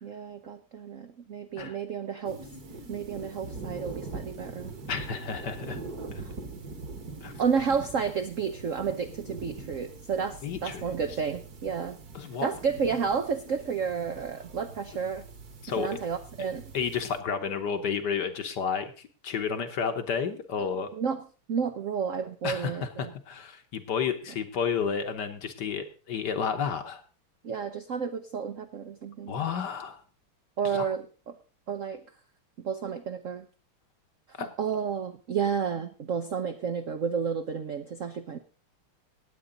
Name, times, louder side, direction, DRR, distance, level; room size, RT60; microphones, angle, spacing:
voice 1, 0.0-2.4 2.9-4.7 6.2-6.3 7.4-12.0 12.4-15.2 15.8-16.6 20.9-21.2 21.5-23.1 27.4-29.4 30.6-31.4 31.7-32.0 32.6-33.5 34.4-38.4, right 6 dB, 70° right, 8 dB, 0.7 m, -31 dB
sound 1, 2.2-17.2, right 3 dB, 45° right, 2.0 m, -43 dB
voice 2, 4.9-5.8 7.2-7.3 10.4-11.0 12.1-12.5 15.6-16.0 16.7-20.9 22.4-27.0 29.3-30.0 30.7-30.9 34.4-34.5, left 6 dB, 60° left, 8 dB, 1.4 m, -31 dB
19.0 x 8.1 x 3.9 m, 0.35 s
omnidirectional pair, 2.4 m